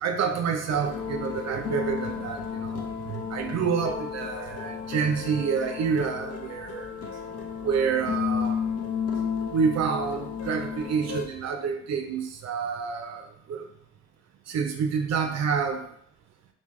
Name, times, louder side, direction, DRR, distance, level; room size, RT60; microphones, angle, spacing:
voice 1, 0.0-2.8 3.1-6.9 7.6-8.5 9.5-13.7 14.5-15.8, right 6 dB, 60° right, 5 dB, 0.5 m, -28 dB
sound 1, 0.7-11.2, left 7 dB, 50° left, 0.6 m, -33 dB
3.5 x 2.6 x 3.1 m, 0.67 s
cardioid pair, 90°, 30 cm